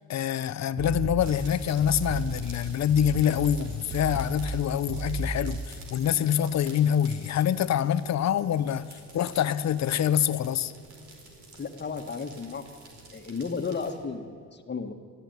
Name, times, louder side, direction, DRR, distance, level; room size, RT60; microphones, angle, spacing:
voice 1, 0.1-10.7, left 9 dB, 60° left, 15 dB, 0.9 m, -26 dB
sound 1, 0.8-5.8, right 3 dB, 35° right, 3.3 m, -34 dB
sound 2, 1.2-13.9, right 3 dB, 70° right, 4.8 m, -50 dB
voice 2, 11.6-12.6 13.1-14.9, left 5 dB, 35° left, 6 dB, 1.7 m, -33 dB
22.5 x 14.5 x 9.4 m, 2.1 s
cardioid pair, 90°, 30 cm